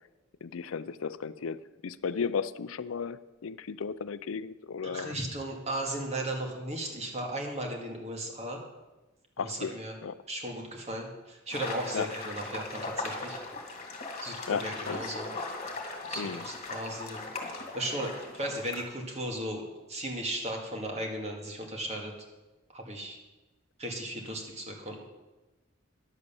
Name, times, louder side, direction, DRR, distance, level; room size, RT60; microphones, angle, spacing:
voice 1, 0.4-5.1 9.4-9.7 10.0-10.2 11.9-12.1 14.5-15.1 16.2-16.5, left 6 dB, 75° left, 16 dB, 0.5 m, -35 dB
voice 2, 4.8-8.6 9.4-10.0 10.3-13.4 14.2-15.3 16.1-17.3 17.5-19.6 19.9-22.1 22.7-23.2 23.8-25.0, right 1 dB, 35° right, 1 dB, 2.1 m, -36 dB
sound 1, 11.5-18.8, left 3 dB, 35° left, 2.2 m, -39 dB
11.0 x 8.1 x 7.0 m, 1.1 s
head